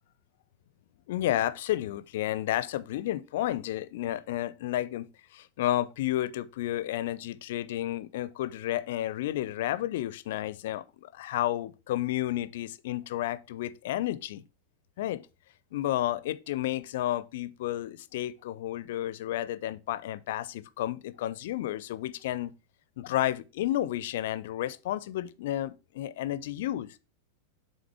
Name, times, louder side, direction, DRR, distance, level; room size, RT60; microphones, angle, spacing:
voice 1, 1.1-14.4 15.0-15.2 15.7-22.5 23.0-27.0, left 13 dB, 55° left, 0.4 m, -31 dB
8.5 x 3.7 x 3.3 m
figure-of-eight pair, 90°, 0 cm